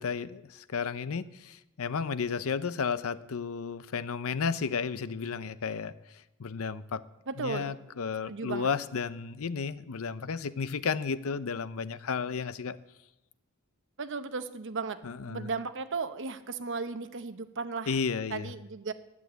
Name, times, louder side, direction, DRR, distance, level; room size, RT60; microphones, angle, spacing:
voice 1, 0.0-7.0 7.4-12.8 15.0-15.5 17.9-18.5, left 5 dB, 70° left, 0.6 m, -33 dB
voice 2, 7.3-7.7 8.3-8.7 14.0-15.0 15.3-17.9 18.3-18.9, right 4 dB, 60° right, 0.9 m, -35 dB
12.0 x 10.0 x 8.0 m
head